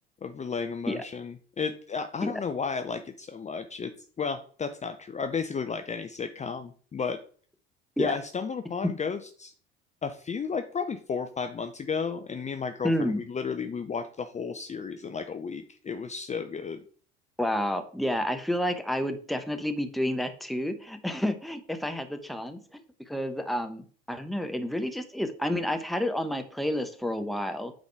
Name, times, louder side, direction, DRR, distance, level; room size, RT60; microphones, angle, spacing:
voice 1, 0.2-3.9 4.2-7.2 8.0-9.5 10.0-16.8, left 5 dB, 25° left, 7 dB, 0.7 m, -33 dB
voice 2, 12.8-13.2 17.4-22.8 23.1-27.7, equal, ahead, 7 dB, 1.1 m, -30 dB
8.6 x 4.1 x 4.7 m, 0.44 s
hypercardioid pair, 65°, 30 cm